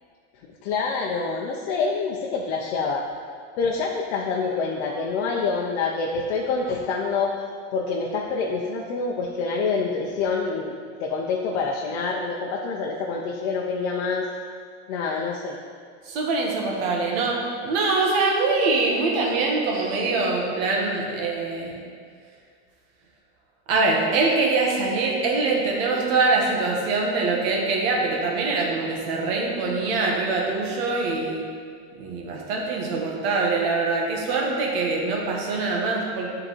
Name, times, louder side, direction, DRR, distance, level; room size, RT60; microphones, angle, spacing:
voice 1, 0.6-3.1 3.6-7.3 7.7-10.7 11.0-14.3 14.9-15.6, left 4 dB, 70° left, -1 dB, 0.7 m, -26 dB
voice 2, 16.1-21.8 23.7-31.4 31.9-36.3, right 3 dB, 65° right, -1 dB, 1.3 m, -24 dB
9.6 x 3.8 x 3.1 m, 2.1 s
supercardioid pair, 155°, 34 cm